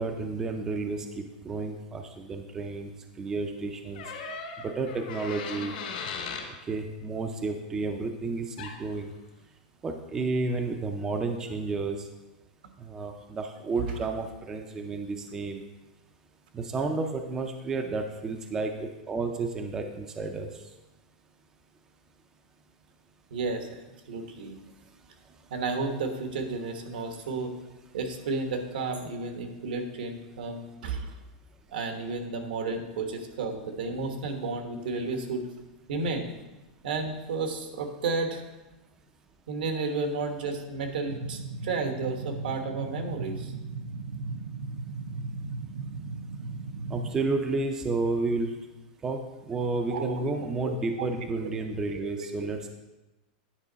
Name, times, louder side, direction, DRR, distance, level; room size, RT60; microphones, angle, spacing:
voice 1, 0.0-2.9 3.2-4.0 4.6-5.7 6.7-9.1 9.8-12.0 12.8-15.6 16.5-20.5 46.9-48.5 49.0-52.7, right 3 dB, 10° right, 5 dB, 0.4 m, -31 dB
sound 1, 4.0-6.5 8.6-8.8, left 5 dB, 75° left, 2.0 m, -37 dB
voice 2, 23.3-23.8 24.1-24.6 25.5-27.5 27.9-31.1 31.7-35.5 35.9-36.3 36.8-38.4 39.5-43.5 49.9-50.3 50.6-51.1 51.4-51.5 51.9-52.2, right 3 dB, 80° right, 5 dB, 1.3 m, -32 dB
sound 2, 41.1-47.1, right 3 dB, 65° right, 0.5 m, -37 dB
9.8 x 5.3 x 4.0 m, 1.1 s
supercardioid pair, 175°, 5 cm